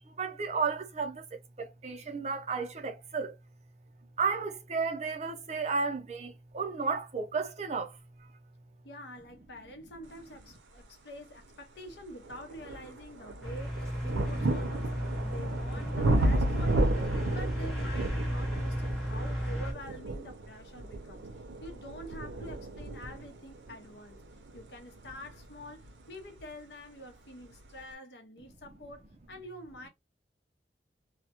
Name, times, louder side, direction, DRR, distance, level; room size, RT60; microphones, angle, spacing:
voice 1, 0.1-1.3 1.6-3.4 4.2-8.3, right 5 dB, 40° right, 0.5 m, -33 dB
voice 2, 8.8-24.2 24.5-29.9, equal, 75° left, 0.7 m, -47 dB
sound 1, 11.2-11.3 11.9-26.5 27.4-27.5, right 1 dB, 90° right, 0.5 m, -33 dB
sound 2, 13.4-19.7, equal, 5° left, 0.8 m, -34 dB
2.2 x 2.1 x 2.8 m
head